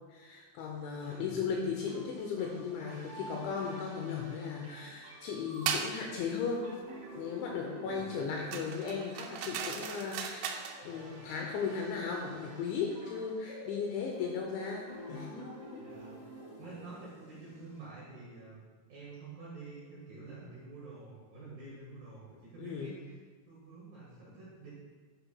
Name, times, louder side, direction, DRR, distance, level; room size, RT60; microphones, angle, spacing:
voice 1, 0.1-6.7 7.1-15.8 22.6-22.9, left 6 dB, 85° left, 1 dB, 2.7 m, -36 dB
voice 2, 1.0-1.3 7.8-8.1 10.7-11.1 15.8-16.2 16.6-18.6 18.9-23.2 23.5-24.7, right 3 dB, 60° right, -7 dB, 2.4 m, -49 dB
sound 1, 1.9-17.9, right 1 dB, 40° right, 2.5 m, -50 dB
sound 2, 5.7-5.9 8.5-10.8, right 7 dB, 85° right, 3.0 m, -36 dB
10.5 x 8.0 x 2.2 m, 1.4 s
omnidirectional pair, 5.8 m